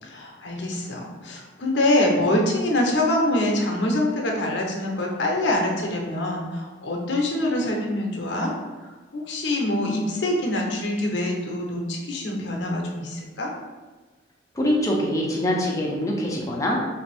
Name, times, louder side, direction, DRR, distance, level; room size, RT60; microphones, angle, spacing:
voice 1, 0.0-8.5 8.8-13.5, left 1 dB, 70° left, 0 dB, 0.7 m, -25 dB
voice 2, 14.5-16.8, left 1 dB, 15° left, -2 dB, 0.6 m, -24 dB
3.4 x 2.6 x 3.3 m, 1.3 s
head